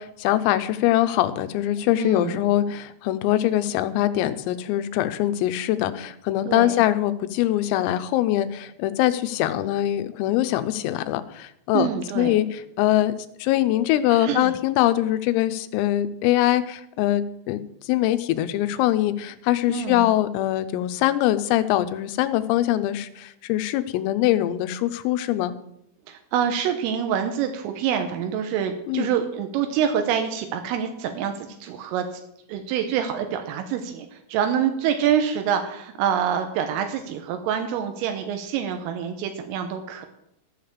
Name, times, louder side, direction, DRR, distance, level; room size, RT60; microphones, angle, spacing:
voice 1, 0.0-11.9 12.2-13.1 13.4-17.6 17.9-25.5 28.9-29.1, left 14 dB, 90° left, 11 dB, 3.5 m, -23 dB
voice 2, 2.0-2.4 6.5-6.9 11.7-12.4 14.1-14.5 19.7-20.1 26.1-32.1 32.5-40.1, right 8 dB, 85° right, 6 dB, 3.5 m, -26 dB
14.5 x 6.7 x 7.2 m, 0.78 s
omnidirectional pair, 5.9 m